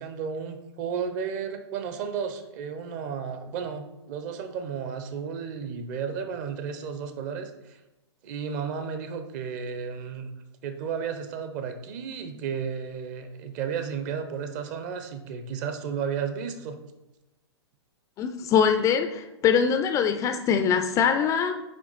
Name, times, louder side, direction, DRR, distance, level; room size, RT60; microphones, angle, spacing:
voice 1, 0.0-7.8 8.2-10.3 10.6-16.8, right 6 dB, 40° right, 8 dB, 0.8 m, -33 dB
voice 2, 18.2-21.5, left 7 dB, 20° left, 7 dB, 0.4 m, -23 dB
8.7 x 3.0 x 4.0 m, 1.0 s
hypercardioid pair, 120°, 15 cm